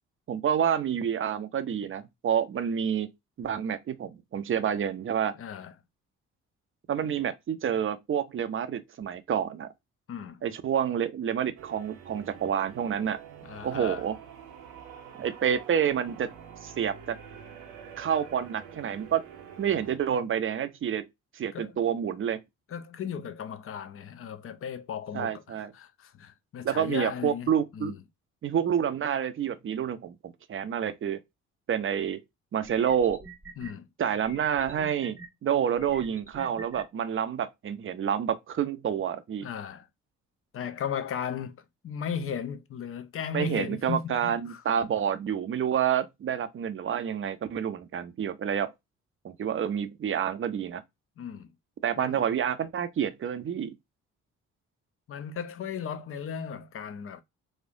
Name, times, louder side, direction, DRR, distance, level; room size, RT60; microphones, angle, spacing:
voice 1, 0.3-3.1 3.4-5.3 6.9-9.7 10.4-13.2 13.6-14.2 15.2-16.3 16.6-17.2 18.0-19.2 19.6-21.1 21.3-22.4 25.1-25.7 26.6-27.9 28.4-31.2 31.7-32.2 32.5-33.2 34.0-39.5 43.3-48.7 49.2-50.8 51.8-53.7, right 8 dB, 35° right, 0.6 m, -28 dB
voice 2, 5.4-5.7 10.1-10.4 13.4-14.1 21.5-21.7 22.7-28.0 33.6-33.9 39.4-39.9 40.5-41.6 41.8-44.6 51.2-51.5 52.0-52.2 55.1-57.2, left 7 dB, 35° left, 0.6 m, -36 dB
sound 1, 11.6-20.0, right 8 dB, 70° right, 0.8 m, -47 dB
sound 2, 32.1-32.2 32.6-33.7 34.2-35.3 35.8-36.8, right 2 dB, 5° right, 0.8 m, -45 dB
4.2 x 2.5 x 2.5 m
figure-of-eight pair, 40°, 37 cm